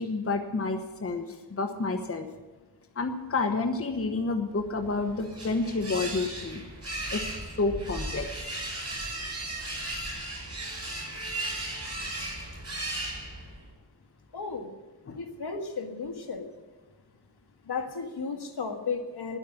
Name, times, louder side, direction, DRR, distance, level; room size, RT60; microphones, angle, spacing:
voice 1, 0.0-2.3 2.9-6.6 7.1-8.6 15.1-15.2, left 3 dB, 35° left, 6 dB, 1.1 m, -30 dB
sound 1, 4.8-13.7, right 1 dB, 35° right, 5.7 m, -36 dB
voice 2, 14.3-14.7 15.2-16.5 17.6-19.4, left 4 dB, 65° left, 5 dB, 1.7 m, -34 dB
10.5 x 8.2 x 9.9 m, 1.2 s
cardioid pair, 65°, 41 cm